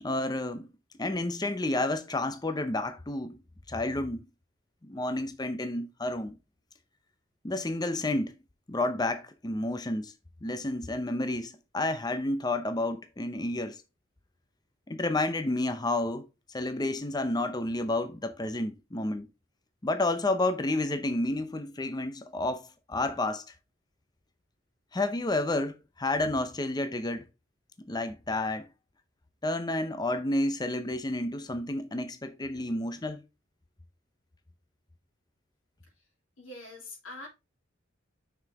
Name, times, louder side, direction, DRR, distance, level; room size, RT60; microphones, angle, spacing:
voice 1, 0.0-0.7 1.0-3.4 3.7-4.3 4.8-6.4 7.4-8.3 8.7-10.1 10.4-13.8 14.9-16.2 16.5-19.3 19.8-23.4 24.9-27.2 27.9-28.7 29.4-33.2, left 2 dB, 20° left, 0.6 m, -30 dB
voice 2, 36.4-37.3, left 2 dB, 80° left, 3.2 m, -44 dB
6.2 x 5.9 x 3.5 m
head